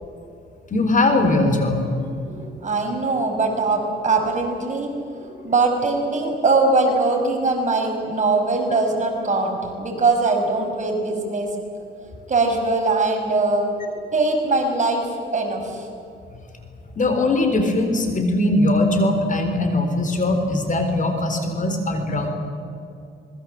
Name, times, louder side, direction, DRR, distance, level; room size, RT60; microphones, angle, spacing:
voice 1, 0.7-1.8 17.0-22.3, left 2 dB, 40° left, 6 dB, 4.0 m, -20 dB
voice 2, 2.3-11.5 12.3-15.9, right 3 dB, 40° right, 2 dB, 5.8 m, -22 dB
25.5 x 21.0 x 7.7 m, 2.6 s
cardioid pair, 90°, 20 cm